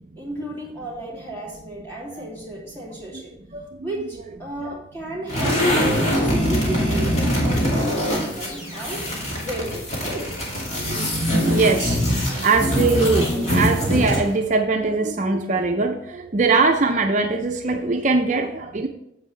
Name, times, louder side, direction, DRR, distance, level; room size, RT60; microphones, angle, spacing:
voice 1, 0.2-3.3 3.8-5.9 6.2-9.0 9.4-10.3, right 1 dB, 10° left, -4 dB, 2.6 m, -33 dB
voice 2, 3.5-3.9 4.6-4.8 10.8-11.1 11.4-18.9, right 3 dB, 40° right, 4 dB, 0.5 m, -22 dB
sound 1, 5.3-14.4, equal, 35° left, 2.1 m, -23 dB
9.0 x 7.3 x 3.2 m, 0.83 s
head